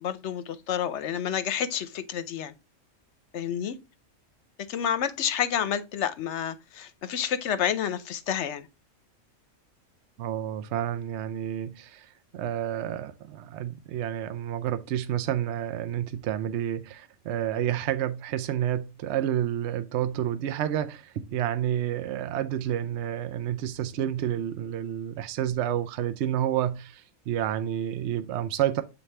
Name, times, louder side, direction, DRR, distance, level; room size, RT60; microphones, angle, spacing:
voice 1, 0.0-2.5 3.3-3.8 4.7-8.7, left 9 dB, 65° left, 0.9 m, -29 dB
voice 2, 10.2-28.8, right 11 dB, 65° right, 0.8 m, -29 dB
7.1 x 4.1 x 3.2 m
omnidirectional pair, 1.3 m